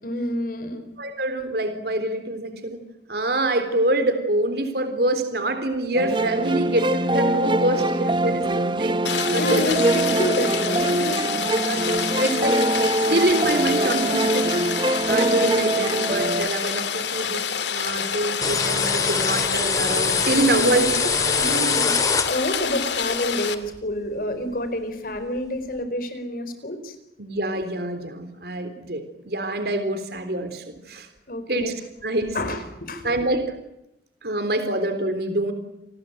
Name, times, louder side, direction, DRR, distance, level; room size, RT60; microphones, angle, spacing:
voice 1, 0.0-0.9 9.3-11.3 20.2-26.9 31.3-31.7 32.3-33.2, left 1 dB, 55° left, 10 dB, 4.6 m, -29 dB
voice 2, 1.0-2.8 3.1-9.0 9.3-9.8 11.6-12.6 13.1-14.5 15.1-17.4 17.7-21.1 27.2-31.1 31.5-31.7 32.0-32.4 33.0-33.5 34.2-35.5, right 2 dB, 60° right, 8 dB, 3.7 m, -25 dB
sound 1, 5.9-16.5, right 2 dB, 25° right, 1.2 m, -23 dB
Rain, 9.0-23.6, left 7 dB, 85° left, 2.4 m, -28 dB
sound 2, 18.4-22.7, left 4 dB, 20° left, 2.1 m, -24 dB
29.5 x 20.0 x 9.2 m, 0.83 s
head